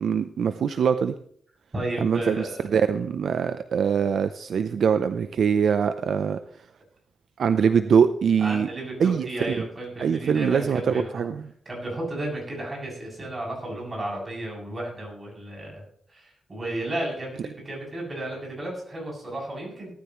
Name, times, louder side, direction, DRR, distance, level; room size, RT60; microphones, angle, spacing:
voice 1, 0.0-1.1 2.0-6.4 7.4-8.7 9.0-9.6 10.0-11.4, right 7 dB, 65° right, 10 dB, 0.6 m, -23 dB
voice 2, 1.7-2.6 8.4-11.2 11.7-15.8 16.1-19.9, right 1 dB, 25° right, -2 dB, 7.6 m, -33 dB
18.5 x 13.0 x 3.1 m, 0.62 s
wide cardioid pair, 120°, 0 cm